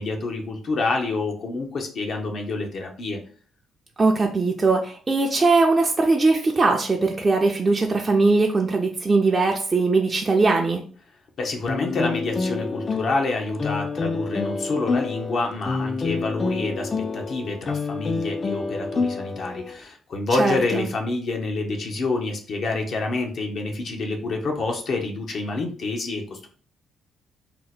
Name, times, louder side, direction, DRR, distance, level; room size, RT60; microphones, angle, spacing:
voice 1, 0.0-3.2 11.4-26.5, left 3 dB, 60° left, 2 dB, 0.7 m, -27 dB
voice 2, 4.0-10.8 20.4-20.9, right 3 dB, 25° right, 1 dB, 0.4 m, -20 dB
sound 1, 11.7-19.8, left 4 dB, 35° left, 0.4 m, -28 dB
2.8 x 2.1 x 4.0 m, 0.43 s
cardioid pair, 90°, 0 cm